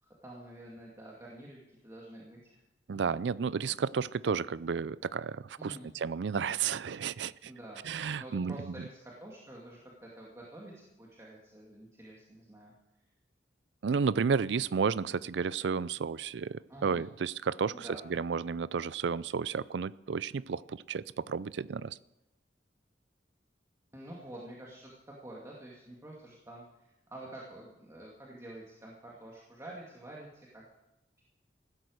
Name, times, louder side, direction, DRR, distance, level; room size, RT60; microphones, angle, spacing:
voice 1, 0.2-2.6 2.9-3.0 5.6-5.9 7.5-7.8 8.2-12.7 16.7-17.1 17.7-18.0 23.9-30.6, right 1 dB, 15° right, -4 dB, 2.3 m, -48 dB
voice 2, 2.9-5.7 6.0-7.5 7.8-8.6 13.8-22.0, right 6 dB, 80° right, 19 dB, 0.4 m, -32 dB
16.0 x 12.5 x 6.5 m, 0.94 s
head